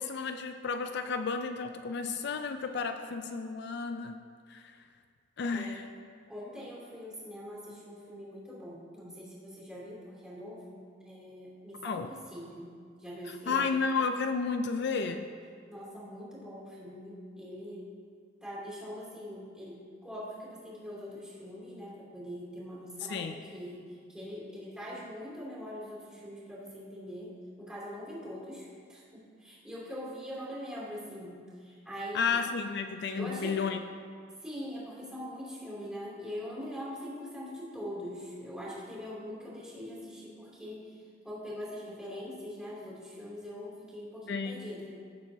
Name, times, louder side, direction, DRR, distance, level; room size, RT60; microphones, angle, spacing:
voice 1, 0.0-4.2 4.5-4.7 5.4-5.9 11.8-12.1 13.5-15.3 23.0-23.4 32.1-33.8 44.3-44.7, left 5 dB, 65° left, 7 dB, 0.4 m, -32 dB
voice 2, 6.3-12.7 13.0-13.6 15.7-17.9 18.4-32.4 33.1-33.6 34.4-45.0, equal, 5° right, -7 dB, 2.8 m, -43 dB
16.5 x 7.4 x 2.8 m, 2.1 s
head